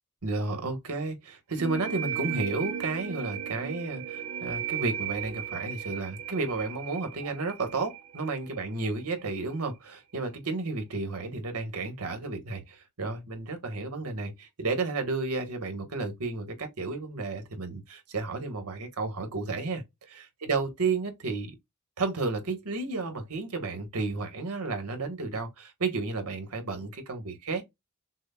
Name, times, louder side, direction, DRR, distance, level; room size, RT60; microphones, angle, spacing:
voice 1, 0.2-21.5 22.0-27.6, right 3 dB, 85° right, 1.3 m, -32 dB
sound 1, 1.6-9.0, right 8 dB, 65° right, 0.7 m, -36 dB
6.1 x 2.1 x 2.2 m
head